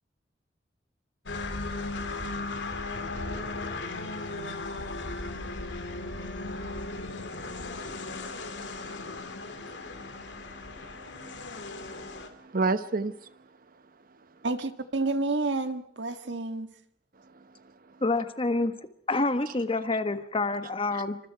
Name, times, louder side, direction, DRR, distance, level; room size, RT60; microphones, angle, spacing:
sound 1, 1.3-12.3, left 3 dB, 75° left, 2.8 m, -36 dB
voice 1, 1.3-13.4 17.2-18.0 20.9-21.0, right 3 dB, 50° right, 0.9 m, -39 dB
voice 2, 14.4-16.7, right 3 dB, 70° right, 1.6 m, -29 dB
voice 3, 18.0-18.7 19.1-21.2, left 2 dB, 30° left, 1.4 m, -27 dB
27.5 x 25.5 x 4.7 m
head